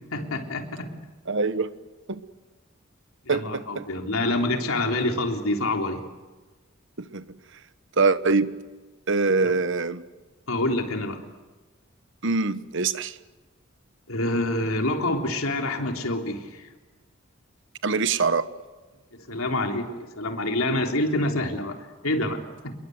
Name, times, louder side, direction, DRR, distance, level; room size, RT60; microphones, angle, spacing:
voice 1, 0.1-0.9 3.3-6.0 9.4-9.5 10.5-11.2 14.1-16.7 19.1-22.7, left 1 dB, 90° left, 3 dB, 3.6 m, -27 dB
voice 2, 1.3-1.7 2.1-2.2 3.3-3.9 7.0-7.3 8.0-8.5 9.1-10.0 12.2-13.2 17.8-18.5, right 4 dB, 60° right, 13 dB, 1.2 m, -24 dB
29.0 x 22.0 x 8.1 m, 1.3 s
head